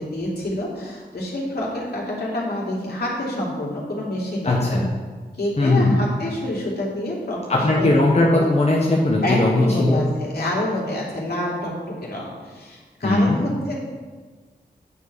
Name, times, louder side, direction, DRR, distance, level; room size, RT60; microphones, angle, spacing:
voice 1, 0.0-4.7 5.3-7.9 8.3-8.5 9.2-11.7 12.0-13.8, left 1 dB, 70° left, -5 dB, 2.9 m, -27 dB
voice 2, 4.4-4.9 5.6-6.0 7.5-10.0 13.0-13.4, left 2 dB, 40° left, -3 dB, 1.3 m, -18 dB
9.2 x 4.6 x 6.9 m, 1.4 s
cardioid pair, 55°, 17 cm